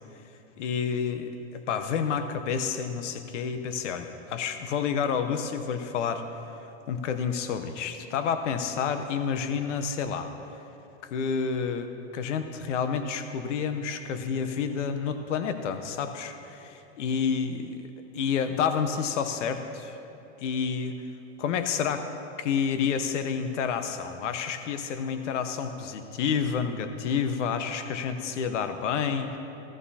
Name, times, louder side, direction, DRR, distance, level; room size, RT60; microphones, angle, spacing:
voice 1, 0.6-6.2 6.9-10.3 11.0-17.9 18.1-20.0 20.4-21.0 21.4-22.1 22.4-29.4, left 6 dB, 80° left, 8 dB, 0.9 m, -29 dB
16.0 x 13.5 x 2.8 m, 2.8 s
supercardioid pair, 140°, 36 cm